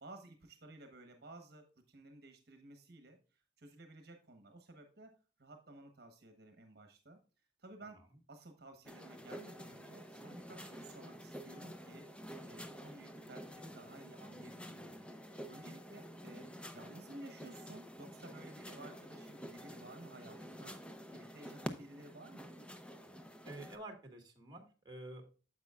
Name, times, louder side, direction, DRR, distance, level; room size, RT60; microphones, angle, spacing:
voice 1, 0.0-7.2 7.6-20.7 21.1-22.5, right 2 dB, 55° right, 6 dB, 1.1 m, -55 dB
sound 1, 8.8-23.8, equal, 5° left, 0.6 m, -49 dB
voice 2, 23.4-25.3, right 2 dB, 20° right, 4 dB, 1.6 m, -49 dB
9.7 x 7.6 x 2.4 m, 0.36 s
head